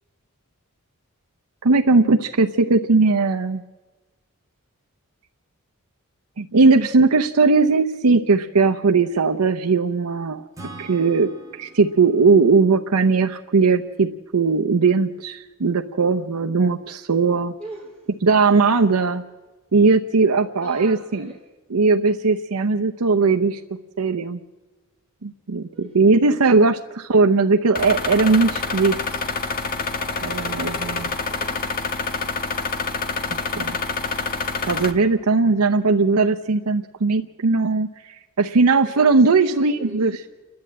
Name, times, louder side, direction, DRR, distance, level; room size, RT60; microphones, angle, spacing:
voice 1, 1.6-3.6 6.4-10.4 10.8-17.5 18.2-19.2 19.7-21.3 21.7-23.6 24.0-24.4 25.2-25.7 25.9-29.0 30.2-31.1 33.6-33.8 34.6-40.1, right 4 dB, 90° right, 5 dB, 0.7 m, -18 dB
Acoustic guitar / Strum, 10.5-14.1, right 2 dB, 15° right, 2.5 m, -44 dB
voice 2, 17.6-18.1 18.5-19.2 20.6-21.4 25.7-26.3 30.4-31.7 38.7-40.2, right 2 dB, 5° left, -4 dB, 2.7 m, -42 dB
sound 1, 27.8-34.9, left 4 dB, 40° left, 1.4 m, -27 dB
29.0 x 11.5 x 8.6 m, 1.2 s
head